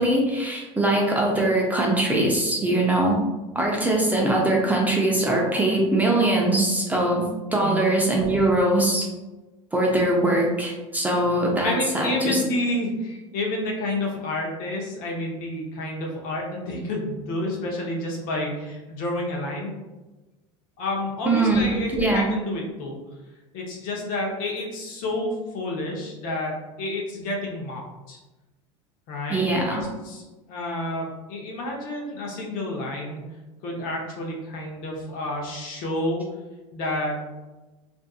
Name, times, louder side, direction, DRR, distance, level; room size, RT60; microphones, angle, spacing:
voice 1, 0.0-3.2 3.5-9.1 9.7-12.4 21.2-21.7 21.9-22.3 29.3-29.8, right 1 dB, 10° right, -2 dB, 0.5 m, -22 dB
voice 2, 11.6-19.7 20.8-23.0 23.5-28.2 29.1-33.2 33.6-36.3 36.7-37.2, left 1 dB, 55° left, -1 dB, 0.8 m, -29 dB
2.5 x 2.5 x 2.3 m, 1.1 s
hypercardioid pair, 100°, 17 cm